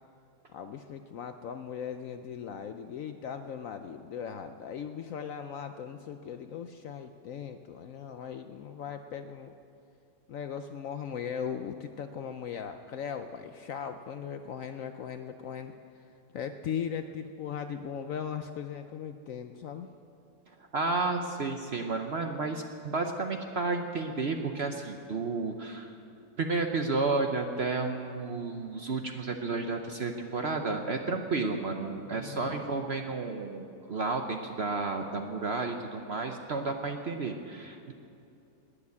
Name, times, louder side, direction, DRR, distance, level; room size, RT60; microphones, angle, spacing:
voice 1, 0.5-9.5 10.3-16.1 16.3-19.9 32.0-32.5, left 7 dB, 65° left, 8 dB, 0.8 m, -38 dB
voice 2, 20.7-25.9 26.4-37.9, right 3 dB, 50° right, 4 dB, 0.8 m, -32 dB
20.0 x 6.8 x 8.4 m, 2.6 s
omnidirectional pair, 1.8 m